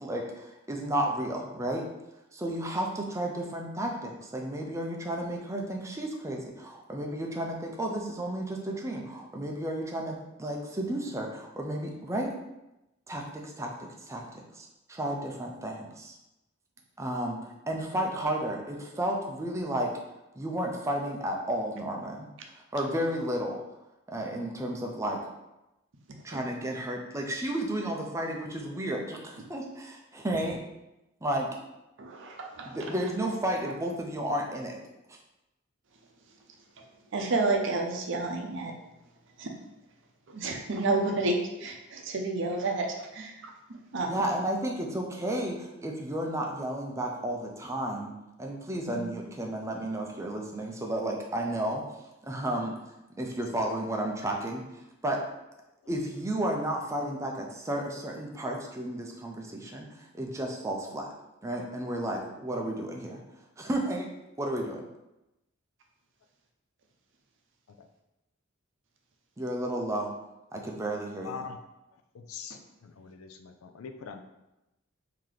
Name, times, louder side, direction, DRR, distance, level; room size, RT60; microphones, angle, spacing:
voice 1, 0.0-1.9 2.3-12.4 13.1-14.2 14.5-16.1 17.0-19.9 20.4-22.3 22.7-23.6 24.1-25.2 26.2-30.6 31.2-31.5 32.7-34.8 44.1-48.1 48.4-51.8 52.2-52.7 53.2-54.6 55.0-55.2 55.9-61.1 61.4-63.2 63.6-64.1 64.4-64.8 69.4-70.1 70.5-71.5, right 1 dB, 15° right, 0 dB, 0.5 m, -32 dB
voice 2, 32.0-32.9 37.1-38.7 39.4-39.5 40.3-43.5 43.9-44.1 48.9-49.0, right 3 dB, 60° right, 2 dB, 0.6 m, -30 dB
voice 3, 71.2-71.6 72.1-72.6 72.8-74.2, left 6 dB, 90° left, 6 dB, 0.4 m, -42 dB
3.2 x 2.8 x 3.8 m, 0.95 s
head